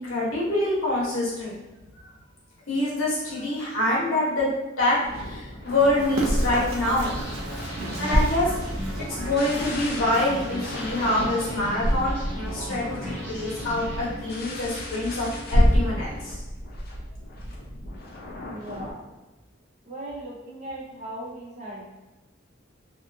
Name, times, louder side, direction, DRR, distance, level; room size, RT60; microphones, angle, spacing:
voice 1, 0.0-1.6 2.7-4.5 4.8-7.1 8.0-12.2 12.5-16.4, left 1 dB, 85° left, -6 dB, 1.1 m, -26 dB
sound 1, 5.0-18.9, equal, 50° left, 0.5 m, -29 dB
Run, 5.8-16.3, right 2 dB, 85° right, 0.6 m, -37 dB
sound 2, 6.9-14.6, equal, 5° left, 0.6 m, -37 dB
voice 2, 18.5-19.1 19.9-21.9, right 1 dB, 35° right, -4 dB, 0.6 m, -38 dB
2.7 x 2.3 x 2.6 m, 1.1 s
head